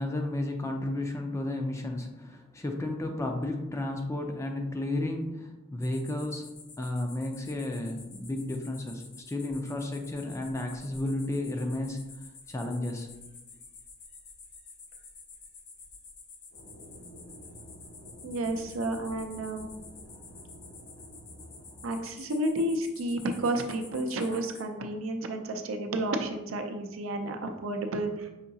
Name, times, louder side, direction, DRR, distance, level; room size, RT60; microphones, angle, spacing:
voice 1, 0.0-12.1 12.5-13.1, left 1 dB, 15° left, 3 dB, 0.4 m, -33 dB
sound 1, 5.8-24.6, left 4 dB, 50° left, 0.7 m, -50 dB
sound 2, 16.5-22.0, right 1 dB, 90° left, 1.3 m, -50 dB
voice 2, 18.2-19.7 21.8-28.3, right 1 dB, 65° right, 5 dB, 0.5 m, -31 dB
5.7 x 2.7 x 2.7 m, 1.0 s
head